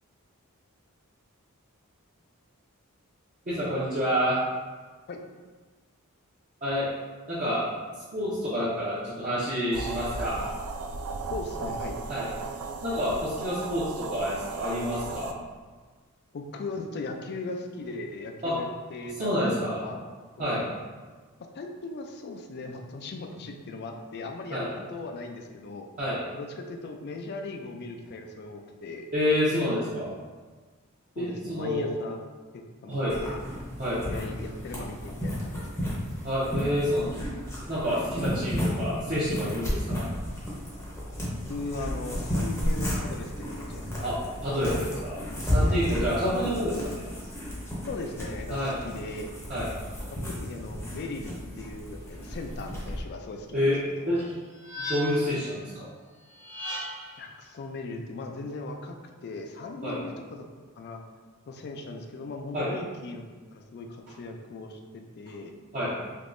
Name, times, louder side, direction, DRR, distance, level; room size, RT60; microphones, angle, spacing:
voice 1, 3.5-4.4 6.6-6.9 7.3-7.6 8.1-10.4 12.1-12.3 12.8-15.4 18.4-18.6 19.2-19.8 20.4-20.7 24.5-24.7 26.0-26.2 29.1-30.1 31.2-31.9 32.9-33.2 33.8-34.0 36.2-37.1 37.7-40.1 44.0-47.1 48.5-48.8 49.5-49.7 53.5-53.8 54.1-54.4 54.8-55.9 59.8-60.0 62.5-62.7 65.7-65.9, equal, 40° right, -11 dB, 0.7 m, -28 dB
sound 1, 9.7-15.3, right 3 dB, 85° right, 0.3 m, -36 dB
voice 2, 11.3-12.0 16.3-19.5 19.8-20.0 20.4-20.6 21.5-25.9 26.3-29.1 31.2-32.2 32.8-33.4 34.1-35.9 41.2-44.1 45.7-45.8 47.9-49.3 50.1-54.2 57.2-59.0 59.2-60.4 60.8-61.0 61.5-63.2 63.5-65.5, left 3 dB, 50° left, 4 dB, 0.3 m, -38 dB
sound 2, 33.1-53.0, equal, 10° left, 0.7 m, -33 dB
sound 3, 54.1-55.4 56.3-57.2, left 1 dB, 80° left, 1.5 m, -36 dB
3.5 x 2.8 x 2.5 m, 1.4 s
head